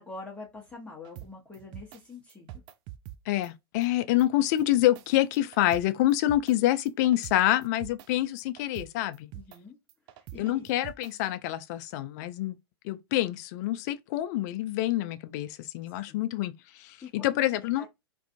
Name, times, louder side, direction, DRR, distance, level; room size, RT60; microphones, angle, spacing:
voice 1, 0.0-2.5 9.3-9.8 10.1-10.7 16.1-16.2 17.0-17.9, left 3 dB, 10° left, 0.8 m, -45 dB
sound 1, 1.0-2.0 2.3-3.2 3.4-3.5 3.8-3.9 4.2-4.3 4.6-5.8 6.1-6.5 6.9-8.1 8.4-8.9 9.1-9.6 9.9-11.1, right 14 dB, 35° right, 0.3 m, -44 dB
voice 2, 3.3-9.3 10.4-12.6 12.8-16.5 16.8-17.9, left 14 dB, 45° left, 0.4 m, -27 dB
2.6 x 2.4 x 2.3 m
hypercardioid pair, 105°, 13 cm